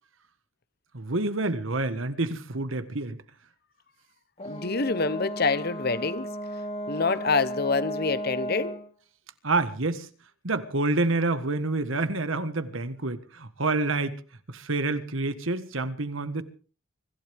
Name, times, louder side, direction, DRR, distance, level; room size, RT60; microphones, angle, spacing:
voice 1, 0.9-3.2 9.4-10.1 10.4-14.2 14.5-16.4, right 2 dB, 80° right, 1.6 m, -28 dB
voice 2, 4.4-6.3 6.9-8.8, left 4 dB, 50° left, 1.0 m, -26 dB
Brass instrument, 4.4-8.9, equal, 35° left, 2.8 m, -35 dB
24.5 x 15.5 x 3.6 m
head